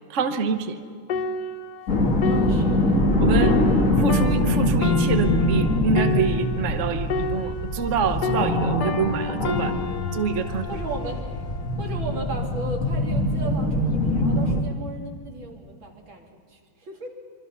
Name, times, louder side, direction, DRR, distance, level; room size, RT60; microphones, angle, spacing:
voice 1, 0.1-0.8 3.2-3.6 4.0-9.8 10.1-10.7, right 6 dB, 45° right, 7 dB, 1.2 m, -26 dB
sound 1, 1.1-8.0 8.2-11.8 12.4-12.7, left 3 dB, 60° left, 1.5 m, -31 dB
sound 2, 1.9-14.6, left 1 dB, 40° left, 2.3 m, -23 dB
voice 2, 2.2-3.6 10.6-11.2 11.8-17.1, right 2 dB, 80° right, 0 dB, 3.5 m, -36 dB
26.0 x 24.5 x 5.7 m, 2.1 s
omnidirectional pair, 2.2 m